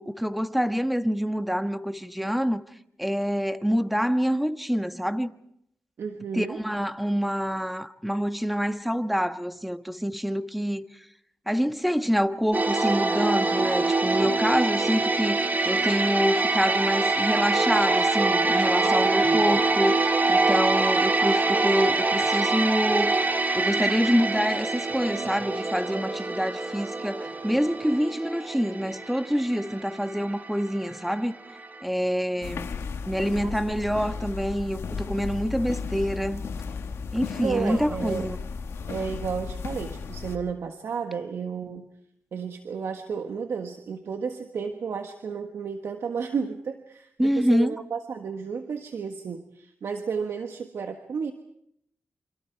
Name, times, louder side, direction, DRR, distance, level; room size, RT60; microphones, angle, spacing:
voice 1, 0.0-2.6 3.0-5.3 6.3-10.8 11.5-23.2 23.5-31.4 31.8-32.7 33.1-36.5 37.1-38.4 47.2-47.7, equal, ahead, 1.5 m, -26 dB
voice 2, 6.0-6.6 18.8-19.2 32.4-32.5 33.4-33.8 37.4-38.3 38.9-41.9 42.3-51.3, right 6 dB, 80° right, 1.5 m, -32 dB
sound 1, 12.5-31.4 31.6-31.8, right 3 dB, 40° right, 2.9 m, -25 dB
sound 2, 32.4-40.4, left 5 dB, 85° left, 1.7 m, -34 dB
28.5 x 26.0 x 4.7 m
cardioid pair, 55°, 4 cm